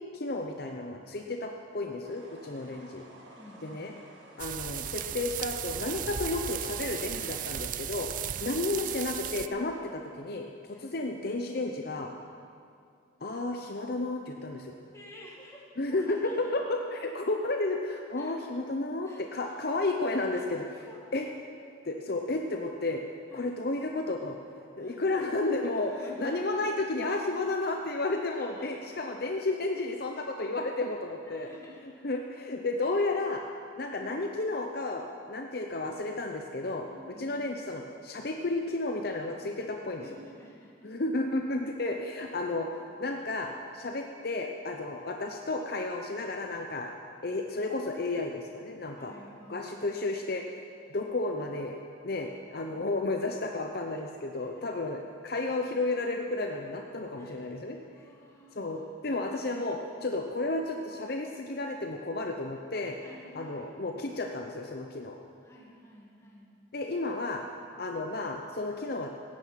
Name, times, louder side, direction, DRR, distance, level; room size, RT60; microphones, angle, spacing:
voice 1, 0.1-3.1 3.6-3.9 4.4-8.1 8.4-12.1 13.2-14.8 15.8-20.9 21.1-21.3 21.8-23.0 23.3-24.4 24.8-25.9 26.2-31.5 32.0-33.4 33.8-40.0 40.8-42.7 43.0-46.9 47.2-49.1 49.5-50.4 50.9-51.8 52.0-57.8 58.5-63.0 63.3-65.2 66.7-67.4 67.8-69.1, left 2 dB, 55° left, 3 dB, 0.7 m, -32 dB
sound 1, 2.0-7.5, right 1 dB, 75° right, 2.0 m, -53 dB
voice 2, 2.5-2.8 3.4-3.9 8.3-8.7 10.7-10.9 14.9-16.6 18.2-18.4 19.0-19.7 20.3-20.5 20.9-21.4 23.3-23.6 24.8-25.0 25.8-26.3 28.4-28.9 31.2-32.0 33.8-34.2 36.9-37.3 40.0-40.9 48.9-49.8 52.6-53.0 54.4-54.5 57.2-57.4 57.9-58.9 63.0-63.7 65.4-66.5, equal, 15° left, -3 dB, 2.1 m, -51 dB
sound 2, 4.4-9.5, right 10 dB, 45° right, 0.4 m, -35 dB
17.0 x 9.2 x 5.9 m, 2.4 s
head